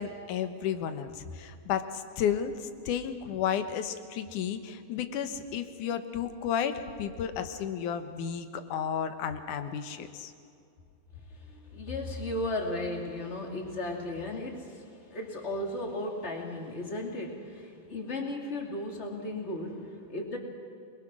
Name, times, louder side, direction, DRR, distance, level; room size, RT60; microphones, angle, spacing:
voice 1, 0.0-10.3, left 8 dB, 80° left, 9 dB, 2.7 m, -32 dB
voice 2, 11.3-20.4, left 1 dB, 20° left, 1 dB, 2.7 m, -35 dB
27.5 x 21.5 x 6.3 m, 2.4 s
omnidirectional pair, 3.5 m